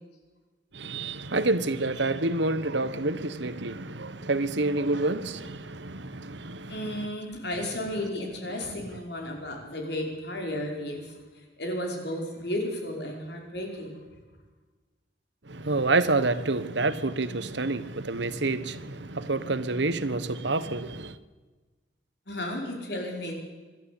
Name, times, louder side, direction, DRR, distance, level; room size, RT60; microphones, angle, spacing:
voice 1, 0.7-7.1 8.6-8.8 15.4-21.2, right 2 dB, 75° right, 1.2 m, -28 dB
voice 2, 6.7-11.1 11.6-14.1 22.3-23.3, left 1 dB, 60° left, 5.1 m, -33 dB
25.5 x 12.5 x 8.5 m
head